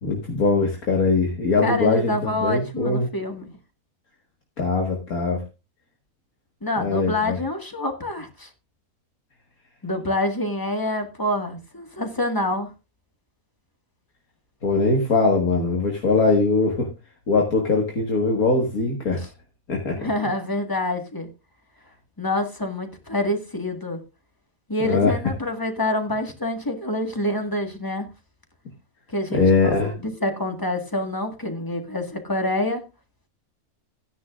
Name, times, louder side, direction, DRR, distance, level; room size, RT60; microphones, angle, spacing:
voice 1, 0.0-3.1 4.6-5.4 6.8-7.4 14.6-16.9 17.3-19.2 19.7-20.1 24.8-25.1 29.3-29.9, left 3 dB, 75° left, 2.2 m, -21 dB
voice 2, 1.6-3.5 6.6-8.5 9.8-12.7 19.2-19.3 19.9-21.3 22.2-24.0 24.7-28.1 29.1-32.8, left 1 dB, 15° left, 1.7 m, -27 dB
15.0 x 10.0 x 2.5 m
omnidirectional pair, 1.5 m